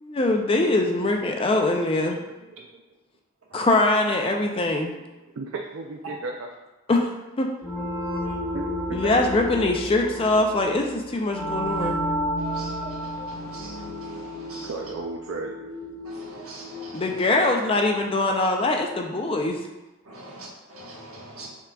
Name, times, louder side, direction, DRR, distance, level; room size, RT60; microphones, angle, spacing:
voice 1, 0.0-2.2 3.5-5.0 6.9-7.1 7.4-7.5 8.9-12.0 16.9-19.6, left 2 dB, 25° left, 3 dB, 0.4 m, -22 dB
voice 2, 2.1-2.8 5.4-6.5 8.5-9.2 14.6-15.6, right 3 dB, 65° right, 1 dB, 0.4 m, -35 dB
sound 1, 7.6-18.1, equal, 5° left, 1.1 m, -32 dB
voice 3, 12.4-14.9 16.0-17.3 20.0-21.6, right 1 dB, 85° right, -4 dB, 1.3 m, -43 dB
5.8 x 3.6 x 2.3 m, 1.1 s
head